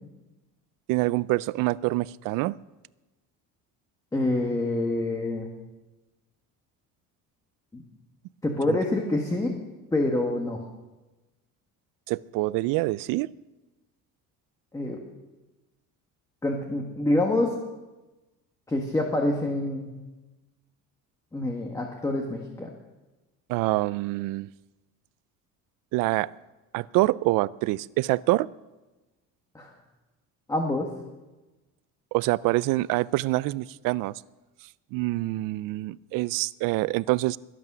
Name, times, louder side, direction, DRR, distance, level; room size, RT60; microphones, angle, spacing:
voice 1, 0.9-2.6 8.7-8.8 12.1-13.3 23.5-24.5 25.9-26.3 26.7-28.5 32.1-34.1 34.9-37.4, right 19 dB, 75° right, 0.5 m, -26 dB
voice 2, 4.1-5.5 7.7-7.8 8.4-9.5 9.9-10.6 14.7-15.0 16.4-17.6 18.7-19.9 21.3-22.7 29.5-29.7 30.5-30.9, left 2 dB, 10° left, 1.5 m, -26 dB
21.5 x 8.5 x 6.1 m
cardioid pair, 140°, 33 cm